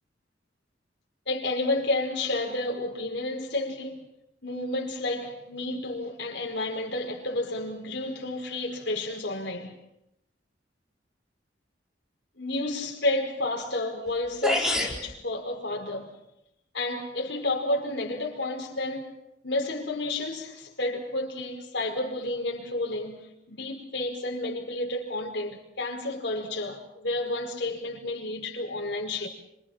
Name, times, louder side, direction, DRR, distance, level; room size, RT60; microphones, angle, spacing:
voice 1, 1.3-4.0 4.4-9.8 12.4-16.1 16.7-19.2 19.4-23.2 23.5-29.3, left 2 dB, 65° left, 5.2 m, -31 dB
sound 1, 14.1-14.2 14.4-15.0, left 1 dB, 5° right, 3.9 m, -25 dB
27.0 x 26.5 x 5.9 m
head